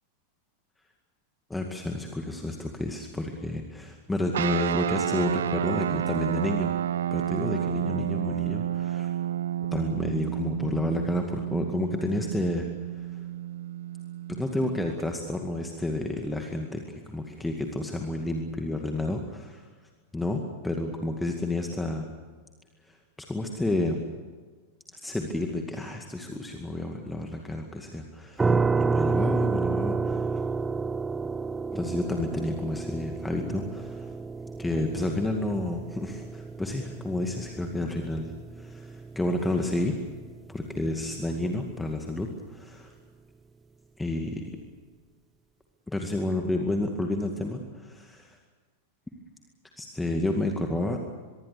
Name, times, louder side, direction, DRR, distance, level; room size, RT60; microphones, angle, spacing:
voice 1, 1.5-6.7 7.1-9.1 9.7-13.3 14.3-19.6 20.1-22.1 22.9-23.0 23.3-24.0 24.9-30.4 31.7-34.1 34.6-38.3 38.6-40.0 40.5-42.9 44.0-44.6 45.9-48.4 49.8-51.0, left 2 dB, 5° left, 3 dB, 2.2 m, -30 dB
sound 1, 4.3-15.0, right 10 dB, 60° right, 0.8 m, -30 dB
sound 2, 28.4-41.2, right 4 dB, 10° right, 0.7 m, -31 dB
24.5 x 22.5 x 6.9 m, 1.5 s
figure-of-eight pair, 90°, 0 cm